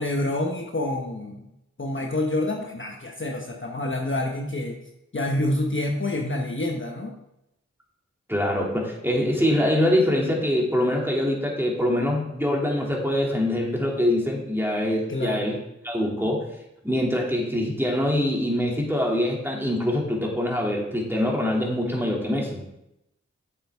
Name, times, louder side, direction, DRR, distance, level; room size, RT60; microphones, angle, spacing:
voice 1, 0.0-1.5 1.8-4.8 5.1-7.1 15.1-15.5, left 1 dB, 40° left, 1 dB, 1.1 m, -27 dB
voice 2, 8.3-15.6 15.8-16.4 16.8-22.6, left 1 dB, 5° right, -2 dB, 2.6 m, -24 dB
8.0 x 7.8 x 3.6 m, 0.84 s
cardioid pair, 40°, 30 cm